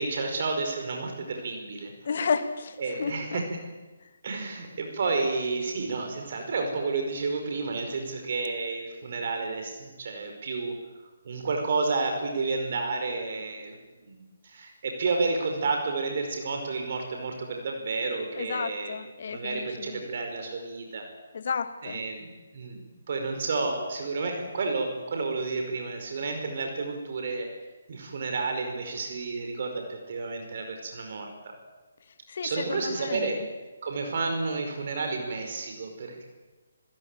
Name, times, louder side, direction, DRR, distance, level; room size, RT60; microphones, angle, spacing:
voice 1, 0.0-1.9 2.8-3.4 4.2-10.7 11.2-13.8 14.0-18.9 19.2-21.1 21.8-22.8 23.1-27.5 27.9-31.5 32.4-33.4 33.8-36.2, right 3 dB, 50° right, 4 dB, 5.1 m, -31 dB
voice 2, 2.0-3.4 18.3-20.1 21.3-22.0 32.3-33.3, left 5 dB, 50° left, 10 dB, 2.2 m, -32 dB
28.5 x 16.0 x 9.1 m, 1.3 s
figure-of-eight pair, 145°, 0 cm